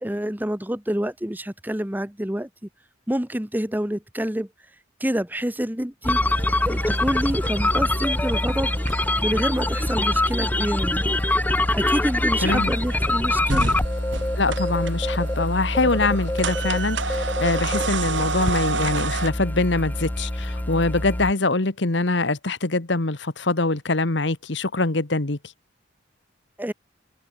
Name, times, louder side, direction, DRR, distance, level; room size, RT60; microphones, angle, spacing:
voice 1, 0.0-2.5 3.1-4.5 5.0-6.2 6.6-8.8 9.2-11.1 11.7-13.7 26.6-26.7, equal, 10° right, 1.2 m, -27 dB
sound 1, 6.0-21.3, left 1 dB, 10° left, 0.6 m, -24 dB
sound 2, 6.2-19.3, right 4 dB, 70° right, 3.8 m, -32 dB
voice 2, 12.4-12.7 14.4-25.4, left 2 dB, 65° left, 1.5 m, -24 dB
head